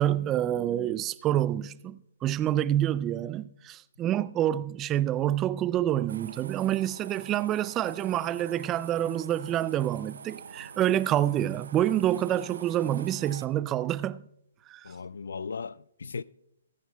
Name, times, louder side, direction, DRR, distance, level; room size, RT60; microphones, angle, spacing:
voice 1, 0.0-14.3 14.7-14.9, right 12 dB, 20° right, 0.3 m, -27 dB
sound 1, 6.1-13.5, right 6 dB, 70° right, 0.6 m, -46 dB
voice 2, 14.8-16.2, left 5 dB, 75° left, 0.3 m, -37 dB
22.5 x 11.0 x 2.3 m
hypercardioid pair, 145°, 0 cm